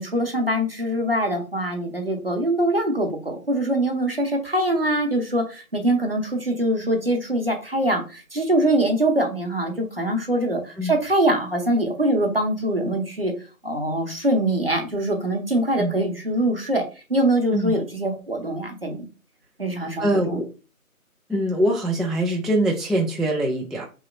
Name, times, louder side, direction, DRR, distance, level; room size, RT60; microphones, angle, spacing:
voice 1, 0.0-13.3 13.6-16.8 17.1-19.1 19.6-20.4, right 1 dB, 45° right, 2 dB, 0.6 m, -23 dB
voice 2, 19.8-20.5 21.3-23.8, right 1 dB, ahead, -1 dB, 0.3 m, -23 dB
3.0 x 2.8 x 2.4 m, 0.33 s
figure-of-eight pair, 165°, 43 cm